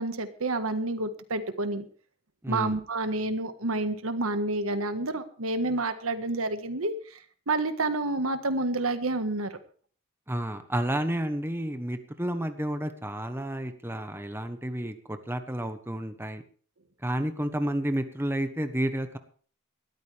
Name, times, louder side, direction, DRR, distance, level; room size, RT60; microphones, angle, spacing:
voice 1, 0.0-1.8 2.5-7.2 7.5-9.6, right 2 dB, 85° right, 9 dB, 1.6 m, -29 dB
voice 2, 2.4-2.8 10.3-16.4 17.0-19.2, right 1 dB, 10° right, 8 dB, 1.1 m, -31 dB
20.0 x 13.5 x 3.5 m, 0.44 s
head